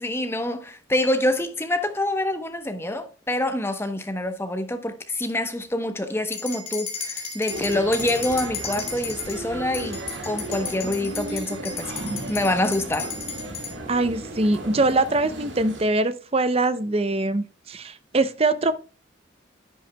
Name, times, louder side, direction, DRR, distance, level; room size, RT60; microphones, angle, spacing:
voice 1, 0.0-10.0 10.2-11.9 12.3-13.1, left 1 dB, 15° left, 0.9 m, -26 dB
sound 1, 6.3-9.4 9.7-13.7, left 5 dB, 30° left, 3.3 m, -34 dB
sound 2, 7.5-15.8, right 1 dB, 80° right, 1.9 m, -35 dB
voice 2, 13.9-18.7, right 2 dB, 30° right, 0.6 m, -23 dB
10.0 x 8.8 x 2.2 m
head